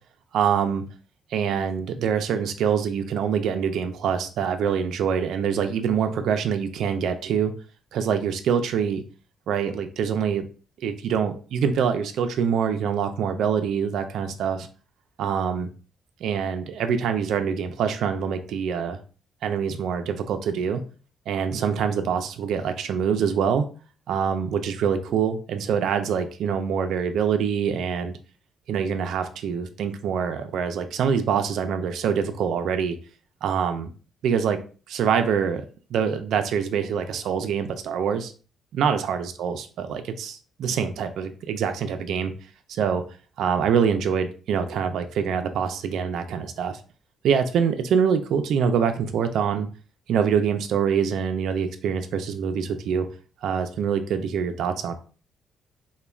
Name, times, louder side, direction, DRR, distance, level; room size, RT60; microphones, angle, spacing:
voice 1, 0.3-0.8 1.3-7.5 7.9-9.0 9.5-10.5 10.8-14.7 15.2-15.7 16.2-19.0 19.4-20.8 21.3-23.6 24.1-28.2 28.7-33.0 33.4-33.9 34.2-34.6 34.9-35.6 35.9-38.3 38.7-42.3 42.7-43.0 43.4-46.8 47.2-49.7 50.1-53.1 53.4-54.9, right 7 dB, 75° right, 7 dB, 0.3 m, -25 dB
3.1 x 2.1 x 2.3 m, 0.38 s
cardioid pair, 90°, 0 cm